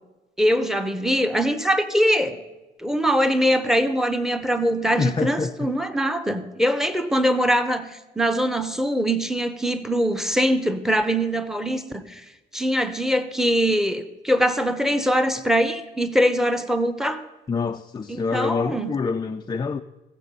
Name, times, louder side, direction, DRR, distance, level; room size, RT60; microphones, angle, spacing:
voice 1, 0.4-2.4 2.8-12.2 12.5-17.2 18.1-18.9, equal, ahead, 0.9 m, -22 dB
voice 2, 5.0-5.5 17.5-19.8, left 4 dB, 20° left, 0.4 m, -26 dB
15.0 x 7.3 x 5.4 m
cardioid pair, 90°, 20 cm